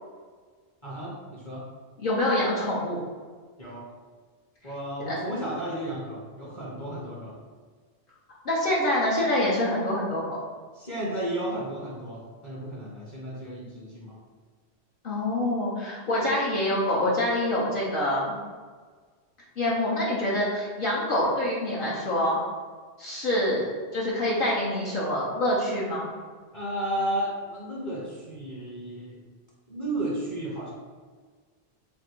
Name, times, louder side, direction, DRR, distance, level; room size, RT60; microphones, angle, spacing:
voice 1, 0.8-1.6 3.6-3.8 4.6-7.4 10.8-14.2 26.5-29.2 29.7-30.7, right 1 dB, 30° left, -6 dB, 0.8 m, -33 dB
voice 2, 2.0-3.0 4.6-4.7 5.1-5.2 8.4-10.4 15.0-18.4 19.6-22.4 23.0-26.1, left 1 dB, 55° left, -6 dB, 0.9 m, -26 dB
3.5 x 2.5 x 4.4 m, 1.5 s
omnidirectional pair, 1.1 m